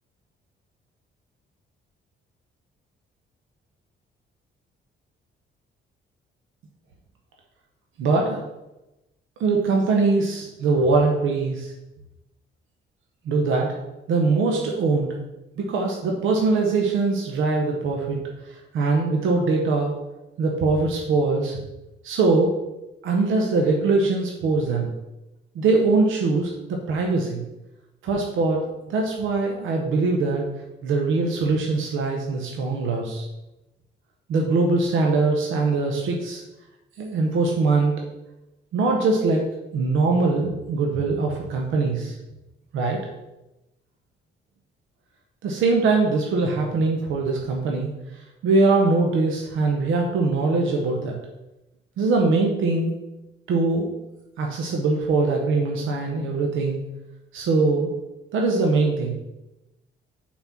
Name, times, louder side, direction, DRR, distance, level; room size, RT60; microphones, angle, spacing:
voice 1, 8.0-8.4 9.4-11.7 13.2-13.8 14.1-15.1 15.6-18.2 18.5-19.9 20.4-21.6 22.0-22.5 23.0-24.9 25.5-27.4 28.0-28.6 28.9-30.4 30.8-33.3 34.3-36.4 37.0-37.9 38.7-39.4 39.7-42.2 42.7-43.0 45.4-51.1 52.0-52.9 53.5-53.9 54.4-56.8 57.3-57.9 58.3-59.1, right 3 dB, 85° right, 1 dB, 1.0 m, -22 dB
5.6 x 4.4 x 5.9 m, 0.98 s
cardioid pair, 90°, 20 cm